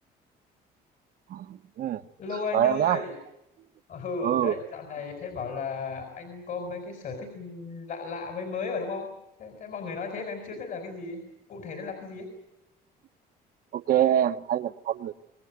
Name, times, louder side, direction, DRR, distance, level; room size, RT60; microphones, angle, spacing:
voice 1, 1.3-2.0 2.5-3.0 4.2-4.6 13.7-15.2, right 10 dB, 60° right, 12 dB, 1.0 m, -25 dB
voice 2, 2.2-3.2 3.9-9.1 9.4-11.2 11.5-12.3, left 4 dB, 55° left, 5 dB, 4.6 m, -35 dB
25.5 x 20.0 x 8.2 m, 0.90 s
cardioid pair, 110°, 17 cm